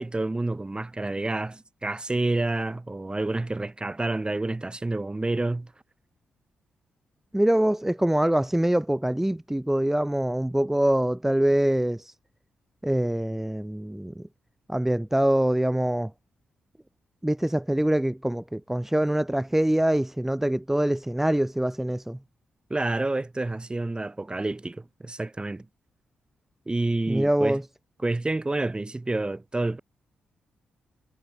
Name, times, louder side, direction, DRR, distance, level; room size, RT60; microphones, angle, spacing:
voice 1, 0.0-5.7 22.7-25.7 26.7-27.6 28.0-29.8, right 2 dB, 25° right, 3.0 m, -28 dB
voice 2, 7.3-12.1 12.8-14.3 14.7-16.1 17.2-22.2 27.1-27.7, right 1 dB, 10° right, 0.7 m, -24 dB
hypercardioid pair, 40°, 4 cm